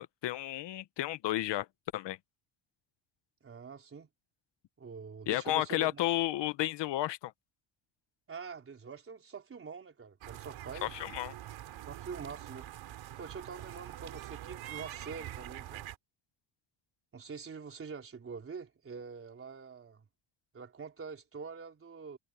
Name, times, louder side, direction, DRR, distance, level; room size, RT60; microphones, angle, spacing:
voice 1, 0.0-1.7 1.9-2.2 5.3-7.3 10.8-11.3, left 15 dB, 60° left, 1.0 m, -32 dB
voice 2, 3.4-4.1 4.8-6.0 8.3-11.0 11.9-12.7 13.2-15.9 17.1-20.0 20.5-22.2, right 5 dB, 25° right, 4.1 m, -45 dB
sound 1, 10.2-16.0, right 13 dB, 70° right, 3.0 m, -45 dB
cardioid pair, 165°, 48 cm